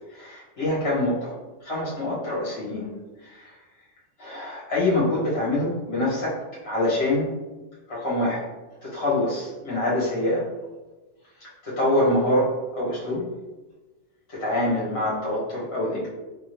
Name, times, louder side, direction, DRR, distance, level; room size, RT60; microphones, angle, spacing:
voice 1, 0.2-1.3 1.6-2.9 4.2-6.4 6.6-7.3 7.9-8.5 8.8-10.4 11.6-13.2 14.3-16.1, left 1 dB, 55° left, -6 dB, 1.5 m, -25 dB
3.7 x 2.7 x 3.2 m, 1.2 s
omnidirectional pair, 1.3 m